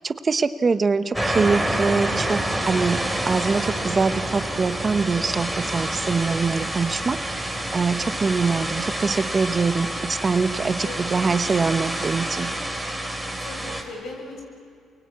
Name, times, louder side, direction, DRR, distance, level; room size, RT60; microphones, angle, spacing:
voice 1, 0.0-12.5, right 4 dB, 35° right, 11 dB, 0.9 m, -24 dB
voice 2, 0.7-1.1 10.7-11.2 13.2-14.4, left 3 dB, 65° left, 2 dB, 6.6 m, -40 dB
sound 1, 1.1-13.8, right 1 dB, ahead, 3.8 m, -28 dB
29.0 x 23.0 x 8.4 m, 2.3 s
supercardioid pair, 75°, 0 cm